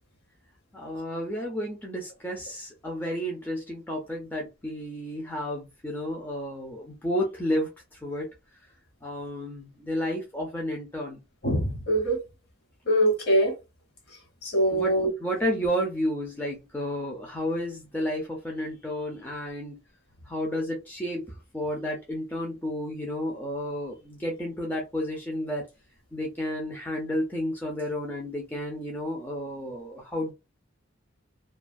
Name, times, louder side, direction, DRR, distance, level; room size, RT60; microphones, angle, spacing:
voice 1, 0.7-8.3 9.0-11.2 14.7-14.9 15.2-19.8 20.3-25.7 26.1-30.3, equal, 10° left, 0.4 m, -31 dB
voice 2, 11.4-12.2 12.9-13.5 14.4-15.1, right 1 dB, 50° left, 1.1 m, -23 dB
2.4 x 2.3 x 2.5 m
head